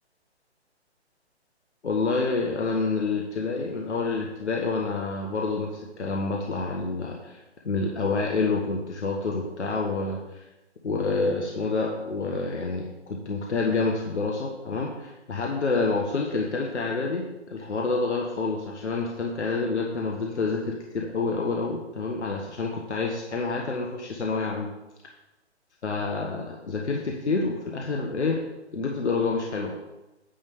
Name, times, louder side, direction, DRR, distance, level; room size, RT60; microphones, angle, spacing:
voice 1, 1.8-5.7 6.0-10.4 10.8-24.7 25.8-28.4 28.7-29.8, left 3 dB, 75° left, 0 dB, 1.4 m, -28 dB
9.4 x 3.6 x 7.0 m, 1.0 s
hypercardioid pair, 150°, 34 cm